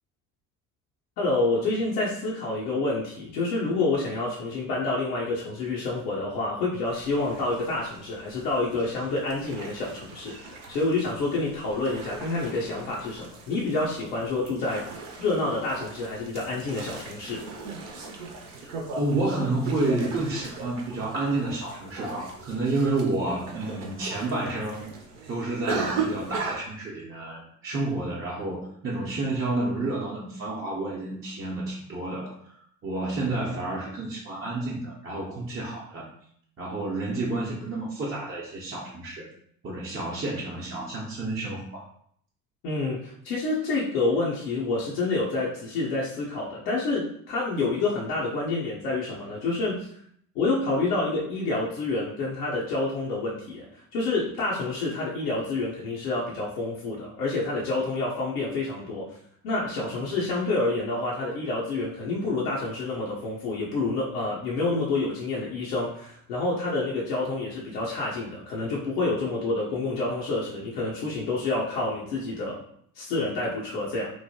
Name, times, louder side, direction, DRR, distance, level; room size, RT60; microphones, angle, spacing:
voice 1, 1.2-14.9 15.2-17.4 42.6-49.9 50.3-59.1 59.4-72.6 73.0-74.1, left 2 dB, 80° left, -5 dB, 0.7 m, -28 dB
sound 1, 6.9-26.6, right 3 dB, 65° right, 0.8 m, -38 dB
voice 2, 18.6-24.8 25.3-32.6 32.8-36.0 36.6-39.3 39.6-41.8, right 2 dB, 25° right, -6 dB, 0.8 m, -30 dB
3.0 x 2.1 x 2.7 m, 0.67 s
hypercardioid pair, 60°, 47 cm